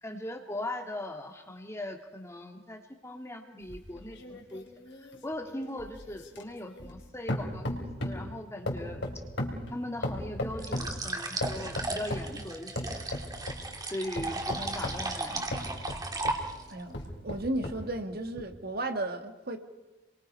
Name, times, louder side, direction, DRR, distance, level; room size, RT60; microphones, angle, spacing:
voice 1, 0.0-4.6 5.2-9.0 9.7-13.1 13.9-15.4, left 1 dB, 15° left, 4 dB, 1.8 m, -39 dB
sound 1, 3.7-7.0 7.3-8.3 8.7-11.0 11.4-12.3 12.8-13.6 14.2-16.4 16.9-17.8 18.4-18.5, left 1 dB, 60° left, 4.0 m, -36 dB
sound 2, 10.6-16.8, right 2 dB, 20° right, 2.2 m, -36 dB
voice 2, 17.2-19.6, right 1 dB, 50° right, 6 dB, 1.8 m, -34 dB
30.0 x 23.0 x 5.4 m, 1.2 s
head